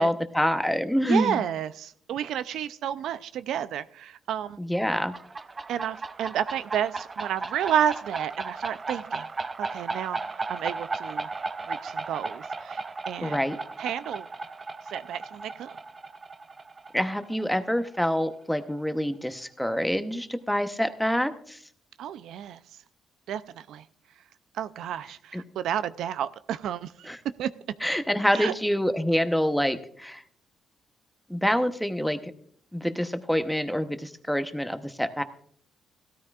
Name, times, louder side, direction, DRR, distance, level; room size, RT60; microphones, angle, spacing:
voice 1, 0.0-1.4 4.6-5.1 13.2-13.6 16.9-21.6 25.3-25.4 27.0-27.2 27.8-30.2 31.3-32.2 32.7-35.2, equal, ahead, 9 dB, 0.9 m, -26 dB
voice 2, 1.1-4.6 5.7-9.3 9.6-10.2 10.5-11.3 11.7-13.4 13.8-14.3 14.9-15.8 22.0-22.6 23.3-23.8 24.5-27.1 27.4-27.5 28.3-28.5, right 9 dB, 80° right, 14 dB, 0.4 m, -31 dB
sound 1, 4.9-18.3, right 3 dB, 30° right, 0.5 m, -36 dB
17.0 x 13.0 x 2.4 m, 0.63 s
cardioid pair, 90°, 0 cm